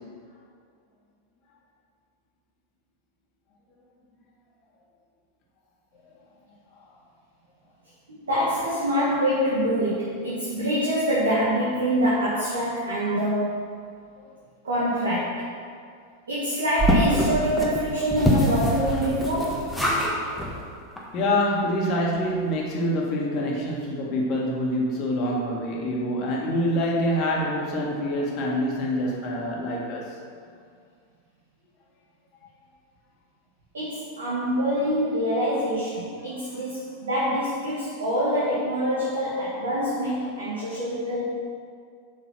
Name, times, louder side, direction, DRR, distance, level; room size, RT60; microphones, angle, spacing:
voice 1, 8.1-13.6 14.6-15.4 16.3-19.7 33.7-41.2, equal, 70° right, -8 dB, 2.1 m, -25 dB
sound 1, 16.8-20.1 20.4-20.5 21.0-21.1 21.3-21.4, equal, 5° left, 1.5 m, -24 dB
voice 2, 21.1-30.0, equal, 40° left, -2 dB, 1.9 m, -26 dB
7.4 x 5.9 x 6.0 m, 2.2 s
figure-of-eight pair, 90°, 0 cm